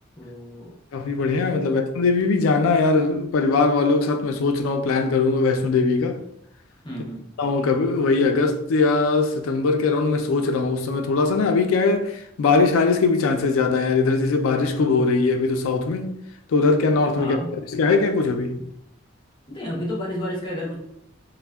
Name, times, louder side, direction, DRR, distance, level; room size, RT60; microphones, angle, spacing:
voice 1, 0.2-0.8 1.6-1.8 6.8-7.3 17.2-17.5 18.6-18.7 19.5-20.8, equal, 20° left, 0.6 m, -31 dB
voice 2, 0.9-6.2 7.4-16.1 16.5-17.4 17.7-18.6, left 3 dB, 85° left, 0.3 m, -21 dB
3.3 x 2.1 x 2.2 m
head